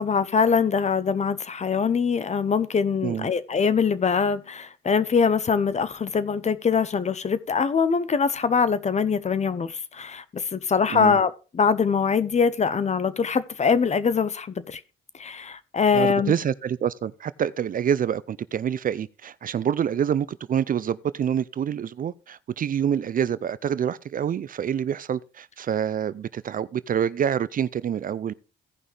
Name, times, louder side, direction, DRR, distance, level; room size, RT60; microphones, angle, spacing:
voice 1, 0.0-14.8 15.2-16.3, left 6 dB, 35° left, 0.8 m, -23 dB
voice 2, 15.9-28.3, right 8 dB, 45° right, 0.5 m, -27 dB
16.5 x 5.5 x 3.3 m
cardioid pair, 90°, 20 cm